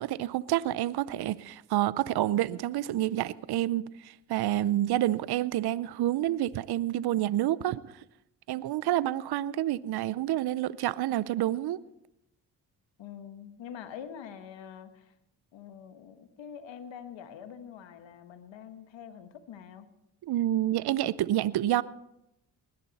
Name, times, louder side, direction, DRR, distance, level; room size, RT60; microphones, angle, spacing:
voice 1, 0.0-7.8 8.5-11.8 20.2-21.8, right 13 dB, 55° right, 0.6 m, -28 dB
voice 2, 13.0-15.1 15.5-19.9, left 8 dB, 70° left, 1.5 m, -45 dB
20.0 x 11.0 x 4.2 m
supercardioid pair, 55°, 46 cm